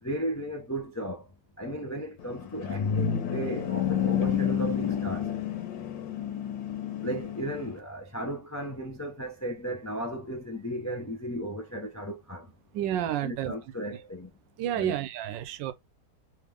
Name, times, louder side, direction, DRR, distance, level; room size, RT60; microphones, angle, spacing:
voice 1, 0.0-1.3 1.6-5.3 7.0-12.5 13.2-14.3 14.7-15.0, right 1 dB, 25° left, 0.3 m, -35 dB
sound 1, 2.2-7.8, left 8 dB, 90° left, 1.6 m, -30 dB
voice 2, 12.7-13.5 14.6-15.7, right 11 dB, 85° right, 1.3 m, -30 dB
3.4 x 3.3 x 3.4 m
omnidirectional pair, 1.9 m